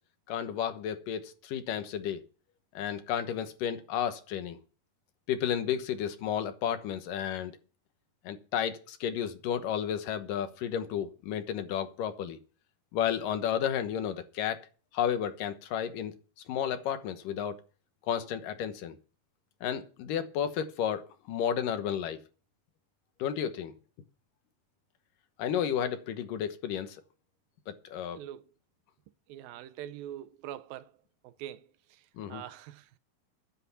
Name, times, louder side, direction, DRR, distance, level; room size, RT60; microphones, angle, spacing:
voice 1, 0.3-2.2 2.7-4.6 5.3-7.5 8.2-12.4 12.9-14.6 14.9-16.1 16.5-17.5 18.1-19.0 19.6-22.2 23.2-23.7 25.4-27.0 27.7-28.2 32.2-32.4, left 9 dB, 70° left, 2.6 m, -32 dB
voice 2, 29.3-30.9 31.2-33.0, right 12 dB, 80° right, 2.3 m, -44 dB
10.0 x 8.1 x 7.0 m
omnidirectional pair, 4.4 m